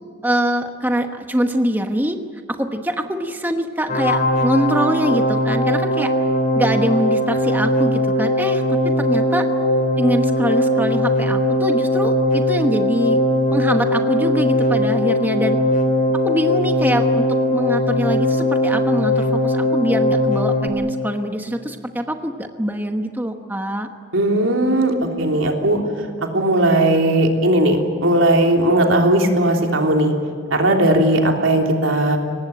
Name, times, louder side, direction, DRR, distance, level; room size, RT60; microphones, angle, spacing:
voice 1, 0.2-2.2 2.6-6.1 6.5-9.5 10.0-13.2 13.5-15.6 16.2-23.9, right 1 dB, 10° right, 5 dB, 1.1 m, -23 dB
sound 1, 3.9-20.7, left 1 dB, 45° left, 2.9 m, -19 dB
voice 2, 24.1-25.8 26.2-30.1 30.5-32.2, right 1 dB, 90° right, 2 dB, 3.4 m, -17 dB
23.5 x 19.0 x 8.9 m, 2.2 s
head